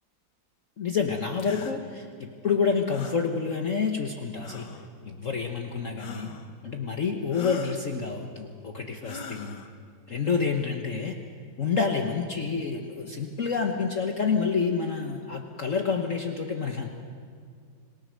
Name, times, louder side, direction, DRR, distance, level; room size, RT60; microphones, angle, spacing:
voice 1, 0.8-4.7 5.1-6.3 6.6-9.6 10.1-11.2 11.6-16.9, left 5 dB, 50° left, 3 dB, 1.3 m, -28 dB
sound 1, 1.4-1.8 2.9-3.2 4.4-4.9 6.0-6.5 7.3-7.8 9.0-9.7, left 6 dB, 70° left, 1.8 m, -40 dB
27.0 x 17.5 x 6.5 m, 2.1 s
omnidirectional pair, 2.0 m